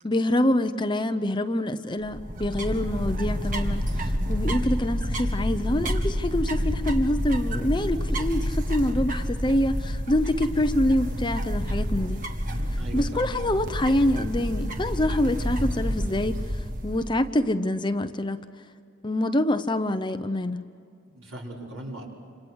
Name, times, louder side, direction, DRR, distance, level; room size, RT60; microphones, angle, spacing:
voice 1, 0.0-12.2 12.9-16.4 16.8-18.4 19.0-20.6, left 1 dB, 20° left, 0.8 m, -26 dB
sound 1, 2.0-17.3, equal, 40° right, 1.7 m, -28 dB
voice 2, 12.8-13.6 21.1-22.1, right 1 dB, 80° right, 5.7 m, -39 dB
28.5 x 27.0 x 6.4 m
head